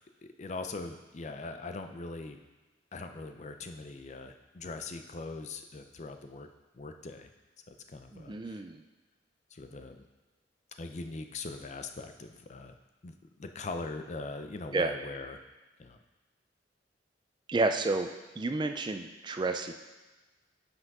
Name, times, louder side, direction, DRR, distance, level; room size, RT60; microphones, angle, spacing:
voice 1, 0.2-2.4 2.9-6.5 6.7-7.3 7.7-8.6 9.5-10.1 10.8-12.7 13.0-13.1 13.4-15.4 15.8-16.0, left 3 dB, 40° left, 7 dB, 0.5 m, -41 dB
voice 2, 8.1-8.8 14.7-14.9 17.5-18.1 18.4-19.7, right 3 dB, 25° right, 7 dB, 0.3 m, -30 dB
5.9 x 5.8 x 5.3 m, 1.2 s
head